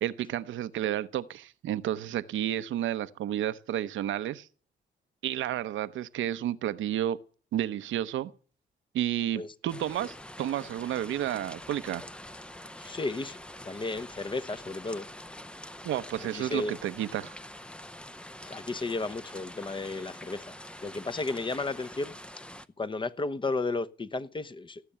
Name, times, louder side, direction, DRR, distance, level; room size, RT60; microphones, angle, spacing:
voice 1, 0.0-4.5 5.2-7.2 7.5-8.3 8.9-12.0 15.8-17.4, right 11 dB, 75° right, 0.9 m, -31 dB
sound 1, 9.7-22.7, left 1 dB, 5° left, 0.7 m, -45 dB
voice 2, 12.8-13.4 13.6-15.0 16.3-16.7 18.4-20.5 20.8-22.1 22.8-24.8, left 3 dB, 25° left, 1.0 m, -33 dB
17.5 x 6.9 x 8.7 m
cardioid pair, 90°, 20 cm